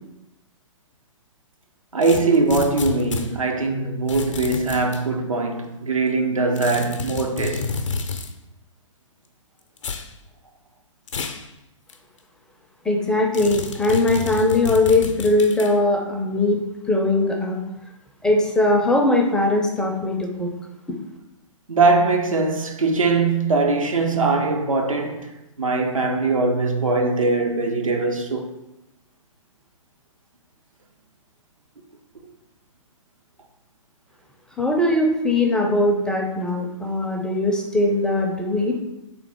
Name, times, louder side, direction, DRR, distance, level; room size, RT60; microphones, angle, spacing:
voice 1, 1.9-7.7 21.7-25.2 25.6-28.5, right 3 dB, 85° right, 0.6 m, -21 dB
sound 1, 2.0-3.3 4.1-5.0 6.6-8.3 9.8-10.1 11.1-11.4 11.9-12.0 13.3-15.7, left 4 dB, 70° left, 0.5 m, -30 dB
voice 2, 12.9-16.6 16.9-17.6 18.2-20.5 34.6-38.8, left 2 dB, 5° left, 0.4 m, -20 dB
3.5 x 3.1 x 3.5 m
figure-of-eight pair, 120°, 17 cm